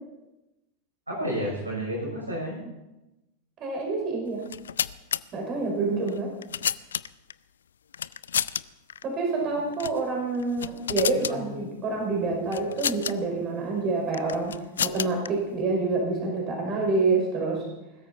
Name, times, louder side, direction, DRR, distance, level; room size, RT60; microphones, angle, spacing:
voice 1, 1.1-2.6 10.6-10.7 11.1-11.4, equal, 85° right, -3 dB, 6.7 m, -31 dB
voice 2, 3.6-4.4 5.3-6.3 9.0-17.6, right 3 dB, 35° right, 0 dB, 5.5 m, -27 dB
sound 1, 4.4-5.2 6.1-7.3 7.9-8.6 8.9-9.0 9.7-10.0 10.4-11.4 12.5-13.1 14.1-15.3, left 8 dB, 70° left, 0.4 m, -30 dB
20.5 x 13.5 x 4.4 m, 0.98 s
figure-of-eight pair, 85°, 0 cm